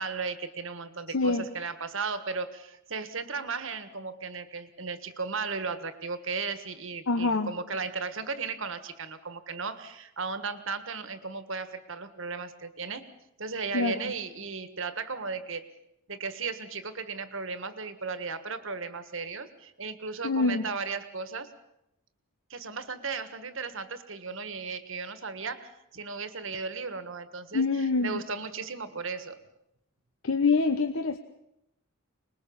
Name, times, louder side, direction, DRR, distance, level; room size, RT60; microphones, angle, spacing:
voice 1, 0.0-13.1 13.4-15.7 16.1-21.5 22.5-29.4, right 4 dB, 65° right, 11 dB, 1.6 m, -35 dB
voice 2, 1.1-1.5 7.1-7.5 13.7-14.1 20.2-20.6 27.5-28.2 30.2-31.2, left 3 dB, 70° left, 8 dB, 1.0 m, -25 dB
25.5 x 21.0 x 7.2 m, 0.84 s
head